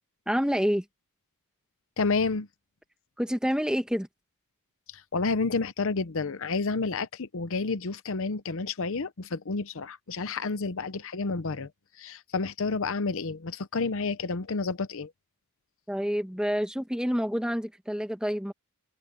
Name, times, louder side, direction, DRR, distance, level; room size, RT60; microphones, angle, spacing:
voice 1, 0.3-0.8 3.2-4.1 15.9-18.5, equal, 5° right, 1.4 m, -28 dB
voice 2, 2.0-2.5 4.9-11.7 12.0-15.1, left 4 dB, 60° left, 0.8 m, -30 dB
head